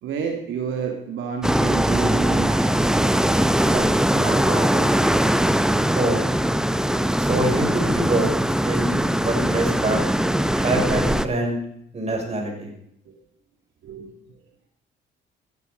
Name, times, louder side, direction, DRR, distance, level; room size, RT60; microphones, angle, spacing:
voice 1, 0.0-3.1 3.6-5.1 13.1-13.2 13.8-14.1, right 6 dB, 80° right, 3 dB, 2.6 m, -31 dB
sound 1, 1.4-11.3, right 1 dB, 5° right, 0.9 m, -21 dB
voice 2, 7.2-8.9 9.2-10.0 10.5-11.6 11.9-12.7, right 2 dB, 35° right, 1 dB, 6.5 m, -24 dB
18.5 x 11.5 x 5.3 m, 0.72 s
cardioid pair, 90°, 20 cm